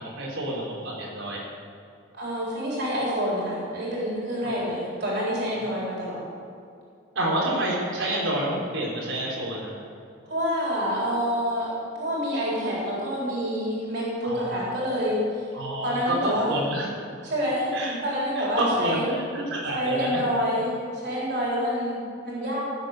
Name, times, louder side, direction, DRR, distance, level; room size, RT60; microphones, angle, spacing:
voice 1, 0.0-1.4 4.4-4.6 5.5-5.7 7.1-9.8 14.2-14.5 15.5-16.9 17.7-17.9 18.4-20.2, right 1 dB, 85° right, -5 dB, 4.1 m, -29 dB
voice 2, 2.2-6.2 10.3-15.4 15.8-16.6 17.2-17.7 18.0-19.1 19.7-22.6, equal, 55° right, -6 dB, 3.9 m, -27 dB
16.5 x 7.7 x 6.6 m, 2.5 s
head